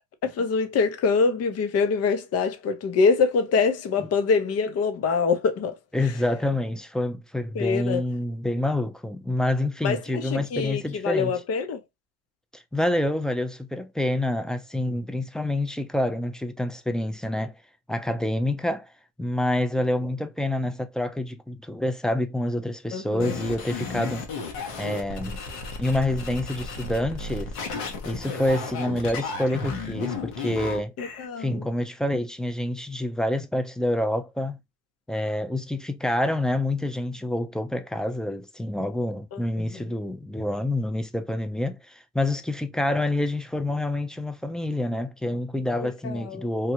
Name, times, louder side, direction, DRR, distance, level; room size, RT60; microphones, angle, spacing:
voice 1, 0.2-5.8 7.5-8.0 9.8-11.8 22.9-23.4 31.0-31.6 39.3-39.4 39.7-39.8 45.8-46.5, left 5 dB, 50° left, 0.9 m, -25 dB
voice 2, 5.9-11.3 12.5-17.6 17.9-18.9 19.2-24.3 24.8-25.4 25.8-27.6 28.0-30.9 31.4-34.6 35.1-46.7, left 1 dB, ahead, 0.5 m, -27 dB
sound 1, 23.2-31.3, left 3 dB, 70° left, 1.2 m, -34 dB
3.4 x 2.3 x 2.8 m
supercardioid pair, 75°, 32 cm